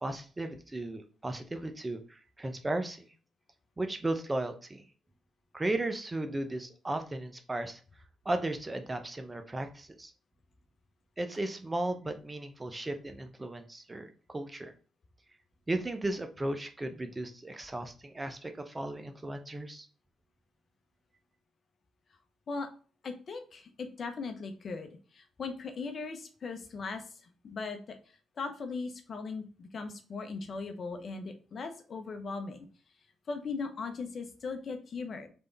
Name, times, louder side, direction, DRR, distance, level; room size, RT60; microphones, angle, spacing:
voice 1, 0.0-3.1 3.8-4.9 5.5-7.8 8.2-10.1 11.2-14.7 15.7-19.9, right 2 dB, 25° right, 7 dB, 0.8 m, -35 dB
voice 2, 23.0-27.8 28.4-32.7 33.3-35.3, left 4 dB, 55° left, 6 dB, 0.9 m, -39 dB
3.6 x 3.4 x 4.0 m, 0.38 s
hypercardioid pair, 50°, 0 cm